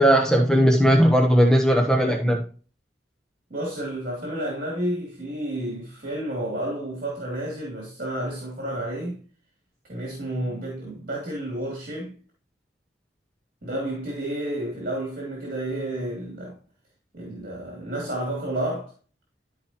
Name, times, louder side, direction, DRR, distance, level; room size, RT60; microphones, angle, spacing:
voice 1, 0.0-2.4, equal, 5° left, 1.1 m, -18 dB
voice 2, 3.5-9.2 9.9-12.1 13.6-16.5 17.1-18.9, right 1 dB, 50° right, 3.1 m, -31 dB
13.5 x 5.1 x 3.1 m
head